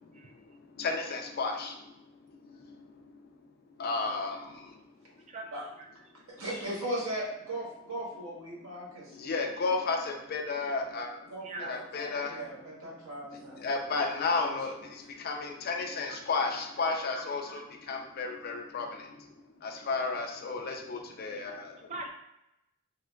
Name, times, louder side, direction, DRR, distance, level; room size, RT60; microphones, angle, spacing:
voice 1, 0.8-1.9 2.3-2.8 3.1-3.2 3.8-4.8 9.1-11.2 11.6-12.5 13.3-19.3 19.6-21.9, left 4 dB, 45° left, 2 dB, 0.3 m, -33 dB
voice 2, 6.3-9.3 11.3-11.8 12.2-13.7 14.3-14.6, right 1 dB, 85° right, -4 dB, 1.0 m, -38 dB
voice 3, 11.4-11.7 16.1-16.2 17.6-17.7 18.3-18.4 19.8-19.9 21.9-22.1, right 2 dB, 35° right, 4 dB, 0.3 m, -41 dB
3.6 x 2.2 x 2.2 m, 0.87 s
head